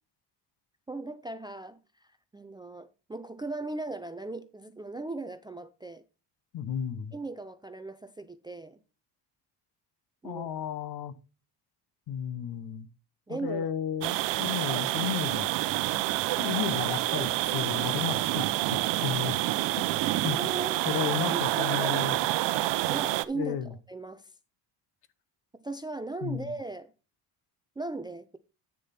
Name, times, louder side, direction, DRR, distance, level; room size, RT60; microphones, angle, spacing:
voice 1, 0.9-6.0 7.1-8.8 10.2-10.5 13.3-13.7 16.3-16.6 20.0-20.8 21.3-22.2 22.9-24.3 25.6-26.9 27.8-28.4, right 3 dB, 10° right, 0.3 m, -38 dB
voice 2, 6.5-7.1 10.2-11.1 12.1-12.9 13.3-15.6 16.4-18.4 18.7-19.4 20.2-20.4 20.9-22.2 23.3-23.7 26.2-26.5, left 9 dB, 60° left, 1.0 m, -33 dB
sound 1, 14.0-23.2, right 16 dB, 80° right, 0.7 m, -28 dB
9.2 x 6.7 x 4.2 m
cardioid pair, 145°, 43 cm